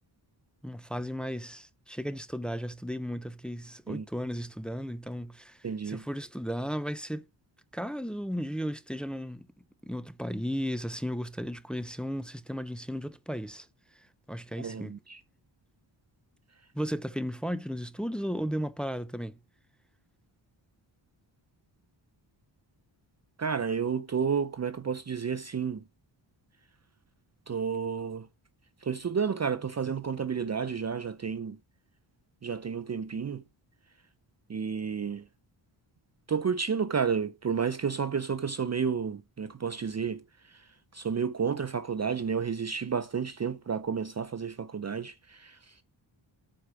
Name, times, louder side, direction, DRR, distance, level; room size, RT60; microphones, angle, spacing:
voice 1, 0.6-7.2 7.7-9.5 9.8-13.7 13.9-14.9 16.7-19.4, equal, ahead, 0.8 m, -35 dB
voice 2, 5.6-6.0 14.6-15.2 23.4-25.8 27.5-28.3 28.8-31.6 32.4-33.4 34.5-35.3 36.3-45.8, right 6 dB, 35° right, 0.6 m, -31 dB
13.0 x 4.9 x 5.0 m
cardioid pair, 80°, 48 cm